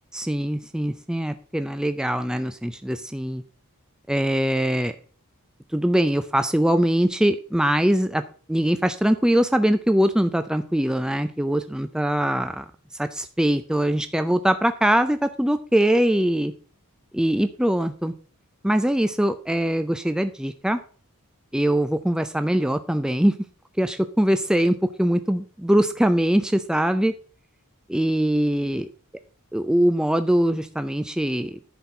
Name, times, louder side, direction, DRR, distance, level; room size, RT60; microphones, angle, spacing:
voice 1, 0.1-3.4 4.1-5.0 5.7-8.2 8.5-12.7 13.0-16.5 17.1-18.1 18.6-20.8 21.5-23.4 23.8-27.1 27.9-28.9 29.5-31.6, right 1 dB, 5° right, 10 dB, 0.3 m, -22 dB
10.5 x 4.3 x 5.9 m, 0.42 s
head